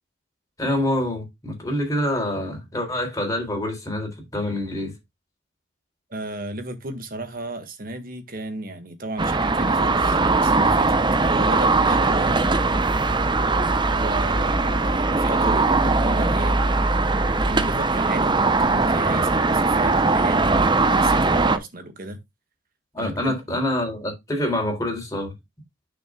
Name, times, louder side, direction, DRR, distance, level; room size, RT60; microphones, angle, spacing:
voice 1, 0.6-4.9 22.9-25.3, left 1 dB, 15° left, 3.9 m, -26 dB
voice 2, 6.1-12.4 13.9-16.6 17.5-22.2 23.0-23.3, right 1 dB, 45° right, 1.9 m, -33 dB
sound 1, 9.2-21.6, right 3 dB, 25° right, 0.8 m, -20 dB
10.5 x 6.5 x 2.4 m
head